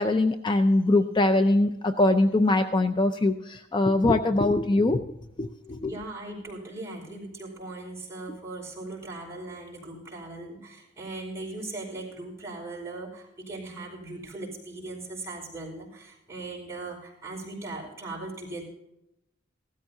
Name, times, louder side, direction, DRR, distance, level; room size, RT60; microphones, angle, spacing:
voice 1, 0.0-5.0 5.4-6.0, left 2 dB, 25° left, 8 dB, 0.5 m, -22 dB
voice 2, 5.8-18.6, right 2 dB, 15° right, -5 dB, 5.0 m, -39 dB
16.5 x 13.5 x 2.7 m, 0.86 s
head